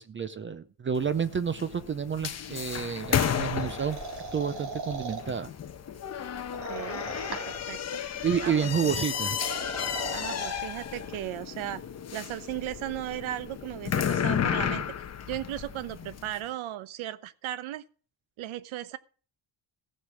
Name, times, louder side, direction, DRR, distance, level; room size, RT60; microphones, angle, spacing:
voice 1, 0.0-4.0 4.3-5.5 8.2-9.4, right 7 dB, 25° right, 0.5 m, -29 dB
sound 1, 1.0-16.4, left 8 dB, 35° left, 1.0 m, -33 dB
sound 2, 3.2-5.2 6.5-7.7 9.1-10.6, right 4 dB, 55° right, 3.4 m, -39 dB
voice 2, 6.5-7.1 7.5-8.0 8.4-9.0 10.1-11.8 12.1-14.8 15.2-17.8 18.4-19.0, right 13 dB, 80° right, 1.0 m, -36 dB
15.0 x 6.6 x 6.3 m
cardioid pair, 180°, 47 cm